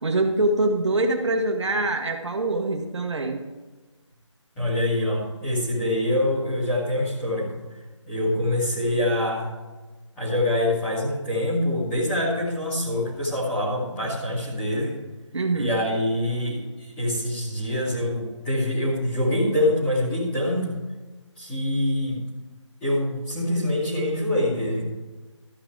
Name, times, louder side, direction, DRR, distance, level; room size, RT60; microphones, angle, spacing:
voice 1, 0.0-3.4 15.3-15.7, right 2 dB, 65° right, 3 dB, 1.4 m, -24 dB
voice 2, 4.6-7.6 8.1-9.5 10.2-14.9 15.5-20.8 21.4-22.2 22.8-24.8, left 1 dB, 10° left, -9 dB, 2.4 m, -25 dB
13.0 x 6.9 x 4.6 m, 1.3 s
figure-of-eight pair, 170°, 16 cm